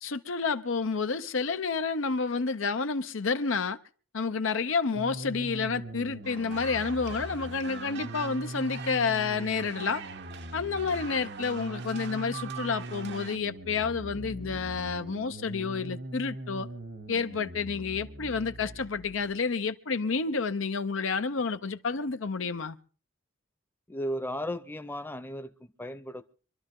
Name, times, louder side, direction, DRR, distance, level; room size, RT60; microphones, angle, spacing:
voice 1, 0.0-3.8 4.1-10.0 10.5-16.7 17.1-22.8, left 5 dB, 80° left, 0.8 m, -30 dB
sound 1, 4.9-19.4, right 1 dB, 85° right, 2.2 m, -41 dB
sound 2, 6.2-13.4, right 7 dB, 60° right, 0.9 m, -43 dB
voice 2, 23.9-26.2, equal, 10° left, 0.8 m, -35 dB
25.0 x 12.0 x 3.7 m
head